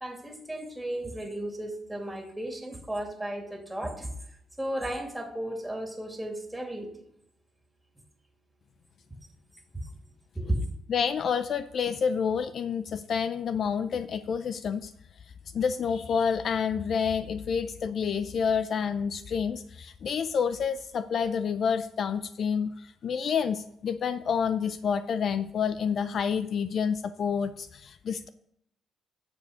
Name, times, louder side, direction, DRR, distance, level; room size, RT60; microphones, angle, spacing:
voice 1, 0.0-4.1 4.6-7.1 9.7-9.9 10.3-10.6, right 1 dB, 5° right, 2 dB, 2.5 m, -34 dB
voice 2, 10.9-14.9 15.5-28.3, left 6 dB, 55° left, 12 dB, 0.5 m, -28 dB
9.5 x 7.0 x 5.0 m, 0.75 s
cardioid pair, 90°, 0 cm